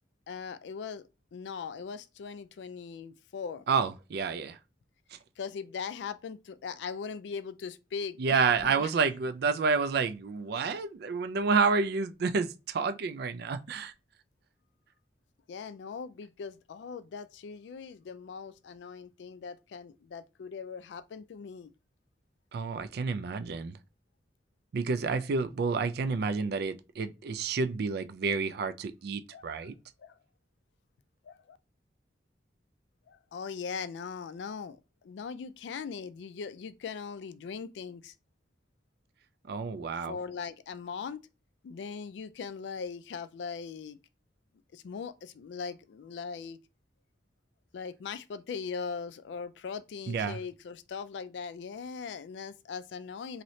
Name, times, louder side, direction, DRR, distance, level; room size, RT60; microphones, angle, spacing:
voice 1, 0.3-1.0 1.3-3.6 5.4-8.9 15.5-21.7 29.3-29.5 30.0-30.2 31.2-31.6 33.1-38.1 39.7-41.3 41.6-44.0 44.7-46.6 47.7-53.4, left 5 dB, 75° left, 0.3 m, -40 dB
voice 2, 3.7-4.6 5.1-5.2 8.2-13.9 22.5-23.8 24.7-29.7 39.5-40.2 50.1-50.4, right 5 dB, 60° right, 0.4 m, -29 dB
2.8 x 2.7 x 3.1 m
head